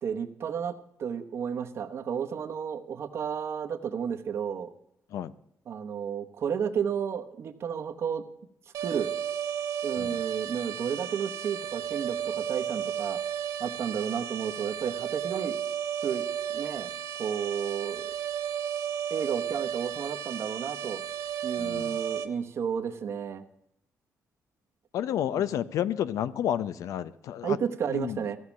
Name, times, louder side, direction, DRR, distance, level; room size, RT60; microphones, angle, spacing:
voice 1, 0.0-4.7 5.7-8.2 8.8-9.1 9.8-13.2 13.6-15.5 16.0-16.3 16.5-16.9 17.2-18.1 19.1-21.0 21.4-23.4 27.4-28.4, right 7 dB, 55° right, 8 dB, 1.0 m, -32 dB
sound 1, 8.7-22.3, right 9 dB, 80° right, 1.0 m, -33 dB
voice 2, 21.6-22.0 24.9-27.6 27.9-28.2, left 10 dB, 85° left, 16 dB, 0.6 m, -30 dB
15.0 x 6.5 x 7.1 m, 0.77 s
cardioid pair, 160°, 5 cm